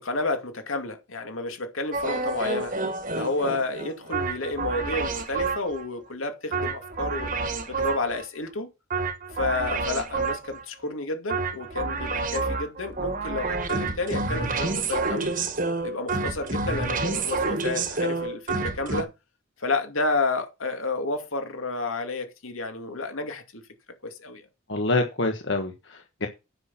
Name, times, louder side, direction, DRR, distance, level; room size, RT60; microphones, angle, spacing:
voice 1, 0.0-2.7 3.1-7.3 7.7-8.7 9.3-15.3 15.8-19.1 19.6-23.6 24.0-24.5, left 3 dB, 85° left, 2.3 m, -30 dB
sound 1, 1.9-5.8 6.5-8.2 8.9-10.6 11.3-19.0, right 3 dB, 40° right, 1.4 m, -29 dB
voice 2, 24.7-26.3, left 2 dB, 60° left, 1.4 m, -26 dB
9.6 x 6.1 x 6.1 m
head